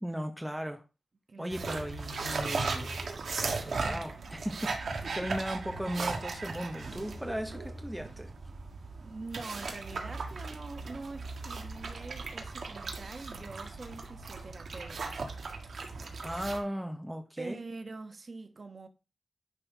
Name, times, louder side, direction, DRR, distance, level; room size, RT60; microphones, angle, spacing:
voice 1, 0.0-0.8 1.4-3.0 3.3-8.3 16.2-17.6, equal, 5° right, 0.8 m, -37 dB
voice 2, 1.3-1.9 5.0-5.3 9.0-15.2 17.4-18.9, right 3 dB, 45° right, 1.3 m, -44 dB
sound 1, 1.5-16.6, right 4 dB, 85° right, 1.7 m, -37 dB
10.0 x 4.3 x 5.5 m
wide cardioid pair, 140°, 0 cm